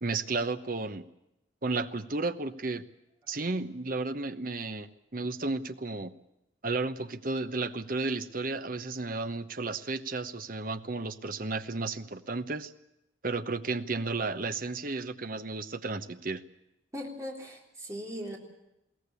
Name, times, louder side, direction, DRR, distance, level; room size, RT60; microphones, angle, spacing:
voice 1, 0.0-1.1 1.6-2.8 3.3-6.1 6.6-12.7 13.2-16.4, right 3 dB, 45° right, 11 dB, 0.9 m, -33 dB
voice 2, 16.9-18.4, equal, 15° right, 0 dB, 3.6 m, -39 dB
21.5 x 17.0 x 8.3 m, 0.87 s
head